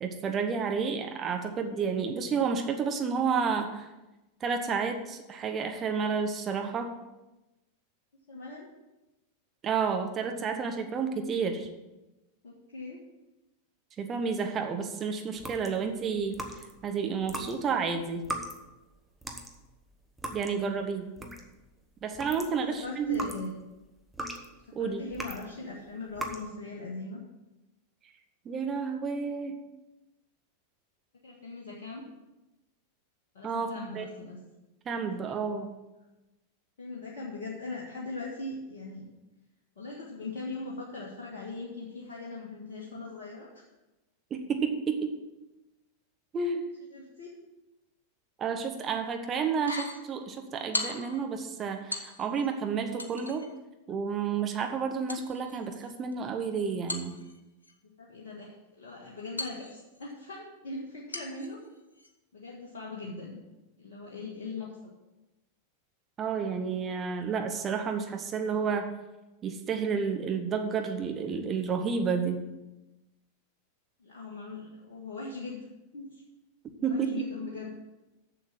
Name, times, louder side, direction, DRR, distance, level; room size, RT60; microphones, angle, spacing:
voice 1, 0.0-3.9 4.4-6.9 9.6-11.7 14.0-16.4 16.8-18.2 20.3-21.1 22.0-23.2 24.7-25.0 28.4-29.6 33.4-34.0 34.8-35.7 44.3-45.2 46.3-46.7 48.4-53.5 53.9-57.1 66.2-68.9 69.4-72.4 76.8-77.3, right 5 dB, 25° right, 5 dB, 1.1 m, -30 dB
voice 2, 8.3-8.7 12.4-13.0 22.4-23.5 24.7-27.2 31.2-32.0 33.3-34.4 34.9-35.2 36.8-39.1 39.8-43.7 46.9-47.3 57.8-61.6 62.3-63.4 63.8-64.9 74.0-75.6 75.9-76.2 76.8-77.7, left 3 dB, 60° left, -4 dB, 1.7 m, -40 dB
sound 1, 15.4-16.8 17.2-21.7 22.0-25.5 26.1-26.5, right 1 dB, 5° right, 1.2 m, -40 dB
sound 2, 49.5-50.0 50.7-51.2 51.9-52.5 53.0-53.5 55.1-56.1 56.9-57.7 59.4-60.1 61.1-61.5 62.0-62.1, left 2 dB, 80° left, 1.0 m, -38 dB
7.3 x 7.1 x 7.5 m, 1.0 s
figure-of-eight pair, 90°, 0 cm